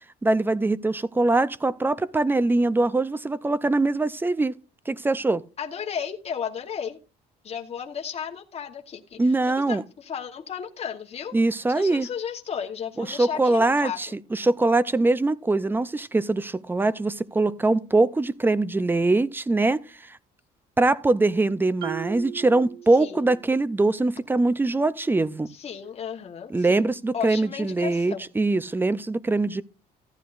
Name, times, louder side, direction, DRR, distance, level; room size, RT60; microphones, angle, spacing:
voice 1, 0.2-4.5 4.9-5.4 9.2-9.8 11.3-12.1 13.0-20.2 20.8-25.5 26.5-29.6, right 2 dB, 10° right, 0.5 m, -23 dB
voice 2, 5.6-7.0 7.4-11.4 11.7-14.0 23.0-23.3 25.5-28.3, left 7 dB, 35° left, 1.1 m, -34 dB
Marimba xylophone, 21.8-23.6, right 13 dB, 70° right, 1.8 m, -37 dB
14.5 x 10.0 x 2.5 m
cardioid pair, 110°, 17 cm